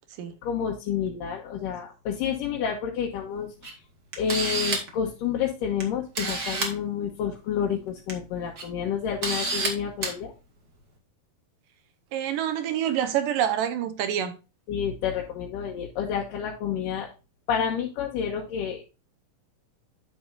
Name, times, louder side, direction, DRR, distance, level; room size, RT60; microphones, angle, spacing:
voice 1, 0.4-3.8 4.2-10.3 14.7-17.1 17.5-18.9, left 8 dB, 70° left, 2.6 m, -29 dB
Camera, 3.6-3.7 4.1-5.0 5.8-5.9 6.1-6.7 7.9-8.1 8.6-8.7 9.2-9.7 10.0-10.1, right 3 dB, 35° right, 1.7 m, -28 dB
voice 2, 12.1-14.3, right 10 dB, 70° right, 2.6 m, -26 dB
10.5 x 6.9 x 2.5 m
omnidirectional pair, 4.3 m